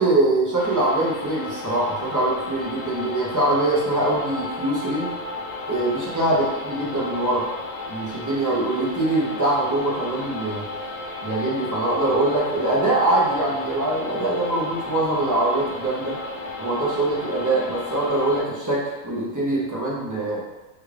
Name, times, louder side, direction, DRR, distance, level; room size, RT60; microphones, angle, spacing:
voice 1, 0.0-5.1 5.7-7.5 7.9-10.7 11.2-16.2 16.6-20.4, right 2 dB, 25° right, -6 dB, 0.4 m, -23 dB
sound 1, 0.6-18.4, left 2 dB, 75° left, 0.9 m, -34 dB
3.3 x 2.4 x 3.2 m, 1.2 s
omnidirectional pair, 1.4 m